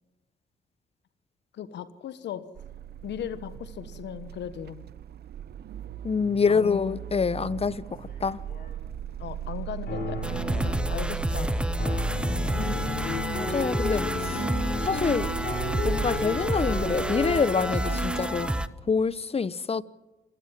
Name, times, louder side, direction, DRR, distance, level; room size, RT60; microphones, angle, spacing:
voice 1, 1.5-2.5 3.0-4.8 6.5-7.0 9.2-10.2 10.5-11.8, left 9 dB, 70° left, 1.3 m, -37 dB
sound 1, 2.6-17.4, right 11 dB, 60° right, 0.8 m, -38 dB
voice 2, 6.0-8.4 12.5-14.4 14.8-15.3 15.8-18.5 18.9-19.8, left 5 dB, 30° left, 0.9 m, -27 dB
sound 2, 8.3-8.7 9.9-10.9 11.8-18.5, left 2 dB, 55° left, 7.3 m, -33 dB
sound 3, 10.2-18.7, equal, 5° right, 1.0 m, -29 dB
28.0 x 16.0 x 7.5 m
supercardioid pair, 55°, 19 cm